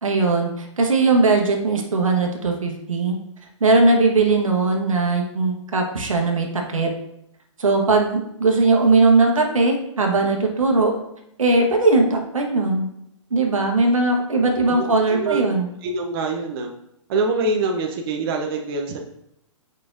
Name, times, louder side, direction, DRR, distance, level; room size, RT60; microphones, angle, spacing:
voice 1, 0.0-3.2 3.6-6.9 7.6-10.9 11.4-12.9 13.3-15.7, right 3 dB, 85° right, 2 dB, 1.2 m, -19 dB
voice 2, 14.7-15.4 15.8-16.7 17.1-19.0, right 3 dB, 45° right, 1 dB, 0.8 m, -25 dB
7.7 x 5.2 x 2.5 m, 0.76 s
hypercardioid pair, 120°, 17 cm